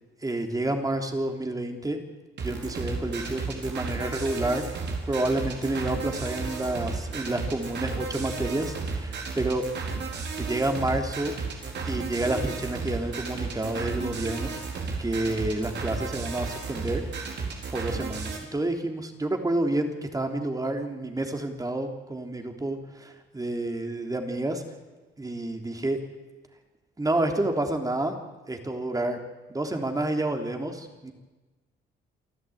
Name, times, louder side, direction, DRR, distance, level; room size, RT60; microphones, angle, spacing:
voice 1, 0.2-2.0 2.4-4.6 5.1-9.6 10.4-11.3 11.8-14.5 15.0-17.0 17.7-24.6 25.2-26.0 27.0-28.2 28.5-29.2 29.5-31.1, right 2 dB, 20° right, 4 dB, 3.4 m, -29 dB
sound 1, 2.4-18.4, right 4 dB, 60° right, 4.9 m, -33 dB
29.0 x 11.5 x 9.4 m, 1.2 s
cardioid pair, 90°, 20 cm